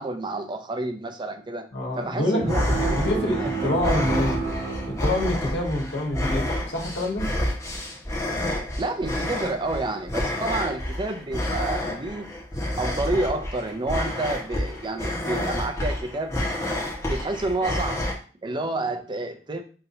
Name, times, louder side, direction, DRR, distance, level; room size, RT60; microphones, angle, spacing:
voice 1, 0.0-1.6 2.0-4.1 4.4-4.5 8.8-12.3 12.8-16.3 17.1-18.1 18.4-19.6, right 2 dB, 25° right, 0.4 m, -29 dB
voice 2, 1.7-4.4 4.9-7.3, left 1 dB, 80° left, 1.4 m, -27 dB
sound 1, 2.4-5.7, right 5 dB, 70° right, 2.0 m, -31 dB
sound 2, 2.5-18.1, left 1 dB, 15° left, 1.1 m, -29 dB
5.7 x 2.7 x 2.7 m
head